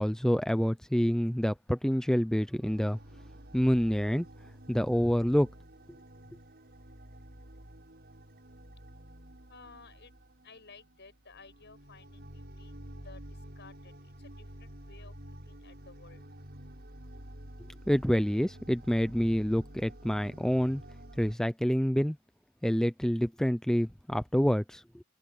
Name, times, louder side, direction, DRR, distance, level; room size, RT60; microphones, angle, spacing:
voice 1, 0.0-3.0 3.5-4.3 4.7-5.5 17.9-20.8 21.2-22.2 22.6-25.0, equal, 5° left, 0.5 m, -27 dB
sound 1, 2.6-21.3, equal, 55° right, 7.8 m, -50 dB
voice 2, 9.5-10.1 10.4-16.2, left 4 dB, 60° left, 7.7 m, -55 dB
open air
head